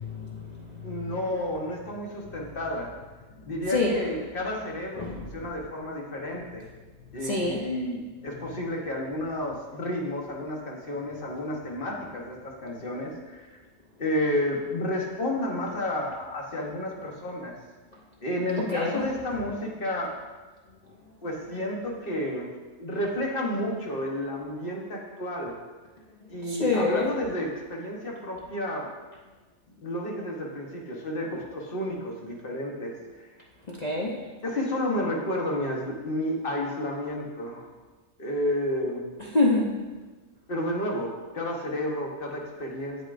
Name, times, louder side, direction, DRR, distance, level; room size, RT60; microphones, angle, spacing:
voice 1, 0.0-1.1 3.7-4.0 5.0-5.2 7.2-7.6 18.6-19.0 26.4-27.1 33.7-34.2 39.3-39.7, left 3 dB, 60° left, -4 dB, 0.4 m, -26 dB
voice 2, 0.8-2.9 3.5-6.7 7.1-13.5 14.0-17.6 18.2-20.1 21.2-22.5 22.8-25.6 26.3-28.9 29.8-33.3 34.4-37.7 38.2-39.1 40.5-43.0, left 1 dB, 40° left, -1 dB, 1.1 m, -31 dB
8.0 x 7.7 x 2.5 m, 1.3 s
omnidirectional pair, 1.7 m